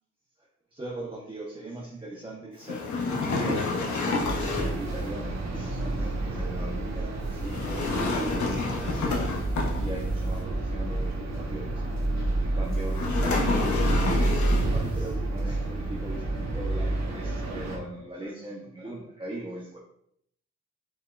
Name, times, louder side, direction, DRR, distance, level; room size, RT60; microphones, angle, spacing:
voice 1, 0.7-9.2 9.8-11.8 12.4-19.8, right 1 dB, 15° right, -5 dB, 1.0 m, -39 dB
sound 1, 2.6-4.9 7.4-10.2 12.9-14.9, left 3 dB, 70° left, 1.1 m, -29 dB
sound 2, 4.2-17.8, right 2 dB, 60° right, 1.3 m, -29 dB
5.4 x 3.5 x 2.5 m, 0.70 s
cardioid pair, 60°, 30 cm